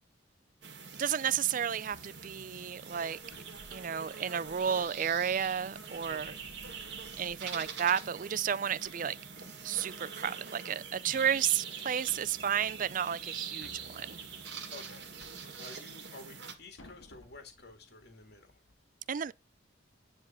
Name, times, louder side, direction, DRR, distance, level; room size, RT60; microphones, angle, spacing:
sound 1, 0.6-16.6, right 6 dB, 60° right, 2.0 m, -44 dB
voice 1, 1.0-3.2 3.7-6.4 7.2-9.2 9.6-14.2 19.1-19.3, right 8 dB, 40° right, 0.4 m, -32 dB
sound 2, 1.9-18.7, left 1 dB, 75° left, 1.8 m, -61 dB
voice 2, 14.7-15.1 15.6-18.6, left 2 dB, 55° left, 1.9 m, -51 dB
10.5 x 3.7 x 5.6 m
head